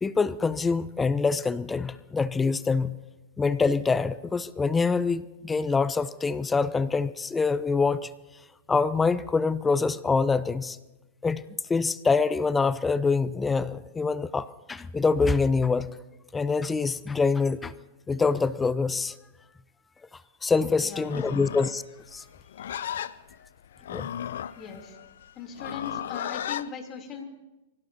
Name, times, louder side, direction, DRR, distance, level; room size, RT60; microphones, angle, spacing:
voice 1, 0.0-3.0 3.4-8.1 8.7-10.8 11.2-11.4 11.7-15.9 16.3-17.7 18.1-19.2 20.1-21.8 22.1-22.2 23.9-24.1, left 4 dB, 15° left, 17 dB, 0.5 m, -25 dB
voice 2, 20.8-21.4 24.6-25.0 25.3-27.3, left 6 dB, 30° left, 3 dB, 3.2 m, -39 dB
Livestock farm animals working animals, 21.0-26.7, left 10 dB, 70° left, 0.5 m, -35 dB
25.0 x 17.0 x 2.8 m, 1.0 s
hypercardioid pair, 110°, 0 cm